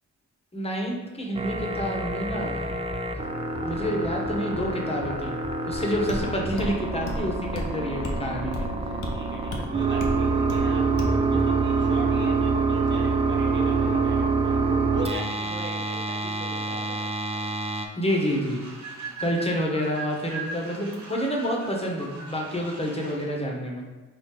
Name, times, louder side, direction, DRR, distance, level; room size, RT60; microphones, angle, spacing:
voice 1, 0.5-2.6 3.6-5.3 5.6-8.7 18.0-18.6 19.2-23.9, equal, 20° left, -1 dB, 1.0 m, -28 dB
sound 1, 1.4-17.9, right 3 dB, 20° right, 0.5 m, -26 dB
sound 2, 6.1-6.3 6.6-6.7 7.1-7.3 7.6-7.7 8.0-8.2 8.5-8.7 9.0-9.1 9.5-9.6 10.0-10.2 10.5-10.7 11.0-11.2, left 2 dB, 80° left, 0.7 m, -31 dB
voice 2, 8.2-17.6, right 2 dB, 40° right, 1 dB, 0.9 m, -40 dB
sound 3, 18.1-23.2, right 3 dB, 65° right, 0.9 m, -39 dB
4.3 x 2.7 x 3.3 m, 1.2 s
cardioid pair, 55°, 31 cm